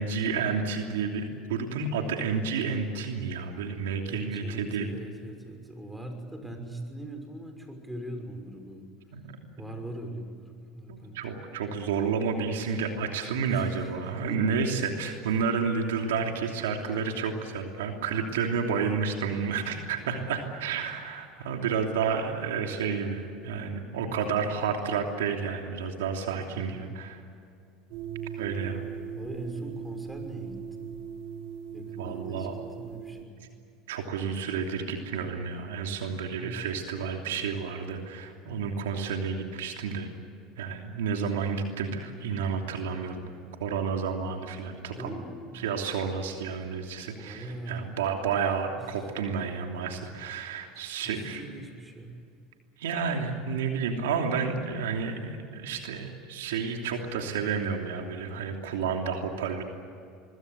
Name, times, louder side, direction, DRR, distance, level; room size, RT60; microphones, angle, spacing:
voice 1, 0.0-4.9 9.1-9.2 10.9-27.2 28.4-28.8 32.0-32.5 33.9-40.1 40.6-43.2 43.6-45.2 45.5-51.6 52.8-59.6, right 5 dB, 90° right, 3 dB, 3.0 m, -30 dB
voice 2, 4.1-8.9 9.6-11.2 13.5-13.9 14.3-14.8 19.9-20.2 26.5-27.0 29.2-31.0 31.7-32.5 32.8-33.5 36.2-36.7 44.9-45.8 47.2-47.9 48.8-49.1 49.8-49.9 50.7-52.2, right 1 dB, 5° right, 5 dB, 6.1 m, -41 dB
sound 1, 27.9-33.2, right 8 dB, 65° right, 1.9 m, -39 dB
24.5 x 22.0 x 8.4 m, 2.4 s
supercardioid pair, 90°, 0 cm